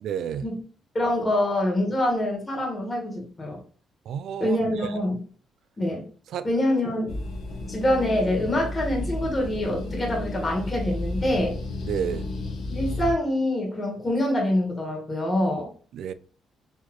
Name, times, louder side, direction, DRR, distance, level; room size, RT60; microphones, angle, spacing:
voice 1, 0.0-0.4 4.1-4.6 6.3-6.5 11.9-12.3 15.9-16.1, right 8 dB, 75° right, 0.3 m, -30 dB
voice 2, 0.9-3.6 4.4-5.2 5.8-6.1 6.4-7.2 7.7-11.5 12.7-15.7, left 1 dB, 25° left, 1.5 m, -25 dB
sound 1, 7.1-13.1, left 2 dB, 70° left, 0.9 m, -32 dB
4.1 x 2.9 x 3.0 m
cardioid pair, 90°, 0 cm